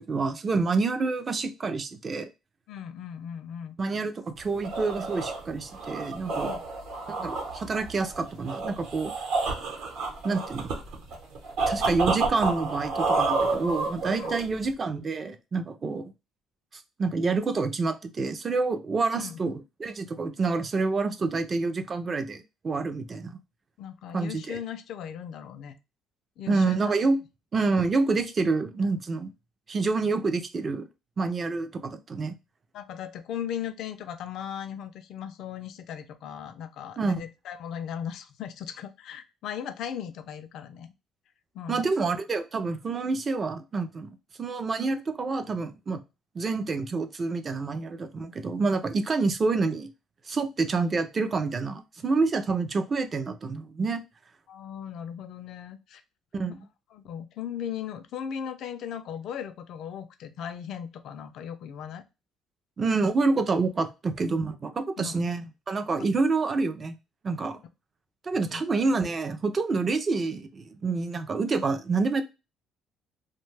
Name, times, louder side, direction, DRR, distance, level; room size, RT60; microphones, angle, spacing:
voice 1, 0.0-2.3 3.8-6.5 7.2-9.1 10.2-10.7 11.7-16.0 16.7-23.4 24.1-24.6 26.5-27.2 27.5-29.3 29.7-30.9 31.2-32.3 37.0-37.2 41.7-46.0 46.3-49.9 50.3-54.0 56.3-56.6 62.8-66.9 67.2-67.6 68.2-72.2, right 3 dB, 30° right, 9 dB, 0.3 m, -28 dB
voice 2, 2.7-3.8 6.4-6.6 14.1-14.4 19.2-19.4 23.8-25.7 26.4-26.9 32.7-40.9 41.5-41.9 54.5-56.0 56.9-62.0 65.0-65.3 66.0-66.1 68.5-68.6, left 8 dB, 65° left, 10 dB, 0.4 m, -37 dB
sound 1, 4.4-14.7, right 3 dB, 70° right, 0.8 m, -30 dB
2.5 x 2.2 x 3.2 m, 0.27 s
cardioid pair, 145°, 0 cm